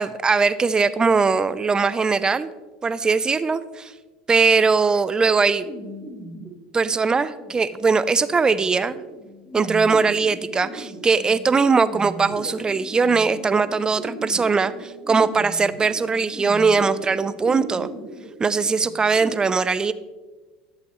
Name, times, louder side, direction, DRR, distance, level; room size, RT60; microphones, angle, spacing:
voice 1, 0.0-2.5 2.8-3.9 4.3-5.7 6.7-9.0 9.5-17.9 18.4-19.9, right 4 dB, 20° right, 15 dB, 0.5 m, -20 dB
sound 1, 5.6-19.3, right 1 dB, 30° left, 2.3 m, -38 dB
12.0 x 7.7 x 3.0 m, 1.3 s
hypercardioid pair, 85°, 3 cm